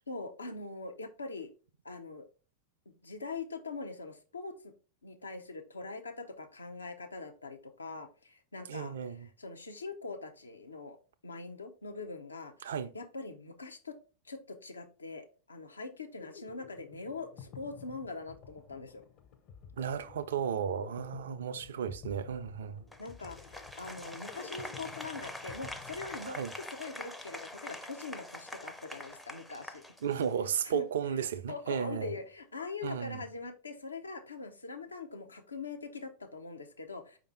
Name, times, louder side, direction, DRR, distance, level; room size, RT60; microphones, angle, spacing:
voice 1, 0.1-1.5 1.8-2.2 2.9-4.5 5.0-11.0 11.2-12.5 12.9-14.0 14.2-19.0 23.0-29.8 30.6-30.9 31.1-37.2, left 3 dB, 75° left, 0.6 m, -43 dB
voice 2, 8.7-9.3 12.6-12.9 19.8-22.9 26.3-26.5 30.0-32.1 32.8-33.3, right 8 dB, 60° right, 0.4 m, -34 dB
sound 1, 15.9-26.7, left 8 dB, 40° left, 0.7 m, -52 dB
Applause, 22.9-30.5, left 1 dB, 5° left, 0.5 m, -45 dB
5.0 x 2.6 x 4.1 m
figure-of-eight pair, 90°, 0 cm